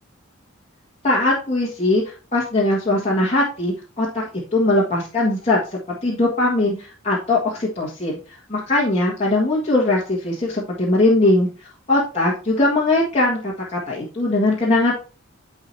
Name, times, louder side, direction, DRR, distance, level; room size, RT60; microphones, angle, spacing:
voice 1, 1.0-2.0 2.3-8.1 8.5-11.5 11.9-14.9, left 2 dB, 30° left, -6 dB, 1.7 m, -20 dB
10.5 x 5.0 x 2.7 m, 0.35 s
head